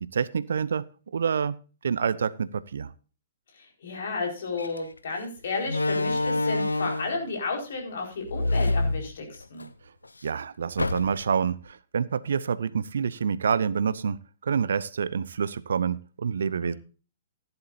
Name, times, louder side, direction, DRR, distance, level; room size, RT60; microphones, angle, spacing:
voice 1, 0.0-1.6 1.8-2.9 10.2-16.7, right 6 dB, 60° right, 18 dB, 0.7 m, -27 dB
voice 2, 3.5-9.7 16.6-16.8, left 3 dB, 55° left, 2 dB, 4.5 m, -33 dB
Slam, 4.6-4.8 5.6-7.2 8.2-9.7 10.0-10.1 10.8-11.4, left 2 dB, 80° left, 0.8 m, -27 dB
15.0 x 11.0 x 2.6 m, 0.35 s
figure-of-eight pair, 115°, 0 cm